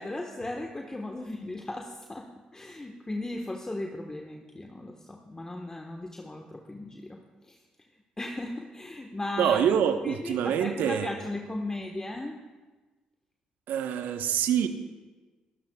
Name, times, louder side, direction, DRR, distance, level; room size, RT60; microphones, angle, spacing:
voice 1, 0.0-7.2 7.5-7.6 8.2-9.6 10.0-12.4, left 2 dB, 20° left, 2 dB, 1.3 m, -36 dB
voice 2, 9.4-11.1 13.7-14.7, right 8 dB, 65° right, 8 dB, 1.0 m, -25 dB
22.5 x 13.0 x 2.3 m, 1.3 s
hypercardioid pair, 45°, 3 cm